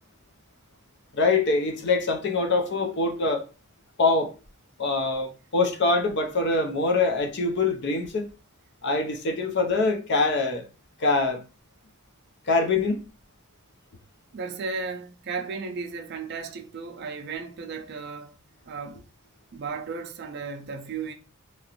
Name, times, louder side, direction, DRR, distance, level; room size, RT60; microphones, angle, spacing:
voice 1, 1.1-3.5 4.0-4.3 4.8-8.3 8.8-10.7 11.0-11.4 12.5-13.0, left 3 dB, 55° left, 0.5 m, -24 dB
voice 2, 14.3-18.4 18.7-19.0 19.5-21.1, right 4 dB, 50° right, 0.4 m, -35 dB
2.9 x 2.5 x 2.9 m
head